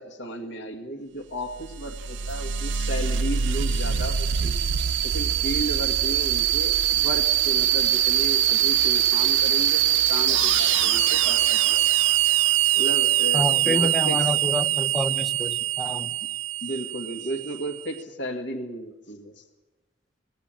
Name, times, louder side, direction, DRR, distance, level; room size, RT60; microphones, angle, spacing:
voice 1, 0.0-4.6 5.0-12.0 12.7-14.4 16.2-16.3 16.6-19.5, right 1 dB, 65° left, 2 dB, 1.8 m, -34 dB
sound 1, 1.5-17.8, right 11 dB, 75° right, 0.7 m, -23 dB
voice 2, 13.3-16.1, left 1 dB, ahead, 7 dB, 0.7 m, -28 dB
20.0 x 17.0 x 8.9 m, 1.2 s
head